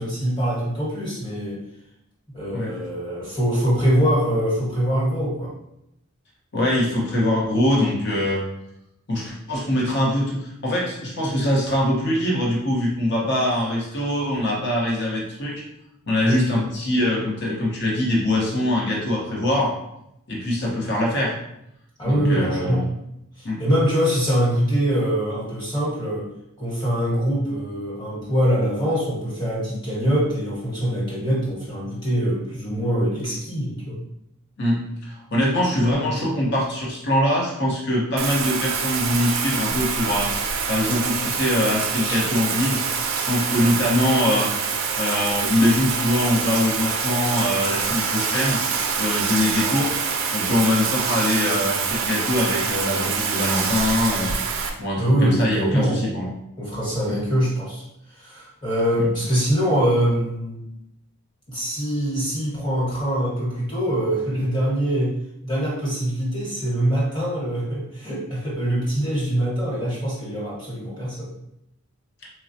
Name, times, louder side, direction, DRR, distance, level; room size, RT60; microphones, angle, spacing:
voice 1, 0.0-1.6 2.3-5.5 16.2-16.4 22.0-22.9 23.4-26.3 26.6-34.0 42.0-42.2 55.0-56.2 56.6-57.8 58.1-60.6 61.5-65.1 65.4-71.3, equal, 20° left, -6 dB, 1.2 m, -23 dB
voice 2, 6.5-8.4 9.1-15.6 16.1-19.7 20.3-21.3 22.0-22.8 23.4-23.6 34.6-40.3 40.7-42.8 43.2-44.5 45.0-48.6 49.0-54.3 54.8-56.3 59.0-59.1, left 1 dB, 50° left, -3 dB, 0.9 m, -23 dB
Bathtub (filling or washing), 38.2-54.7, right 6 dB, 60° right, 0.4 m, -25 dB
4.1 x 2.3 x 2.6 m, 0.80 s
head